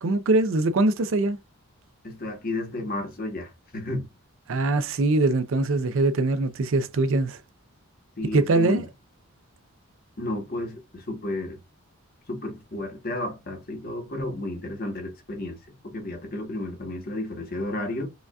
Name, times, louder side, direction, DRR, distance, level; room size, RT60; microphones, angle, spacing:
voice 1, 0.0-1.4 4.5-7.4 8.3-8.8, right 2 dB, 60° right, 0.4 m, -22 dB
voice 2, 2.0-4.1 8.2-8.8 10.2-11.6 12.3-18.1, left 1 dB, 40° left, 1.0 m, -32 dB
5.0 x 2.4 x 2.3 m
head